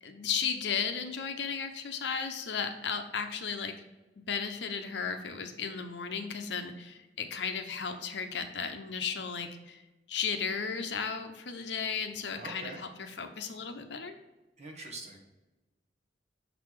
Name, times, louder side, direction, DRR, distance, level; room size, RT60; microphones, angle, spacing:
voice 1, 0.0-3.8 4.3-9.8 10.1-14.2, left 6 dB, 70° left, 6 dB, 0.8 m, -35 dB
voice 2, 12.3-12.8 14.6-15.2, right 2 dB, 40° right, 1 dB, 1.4 m, -44 dB
6.5 x 4.1 x 4.7 m, 1.1 s
head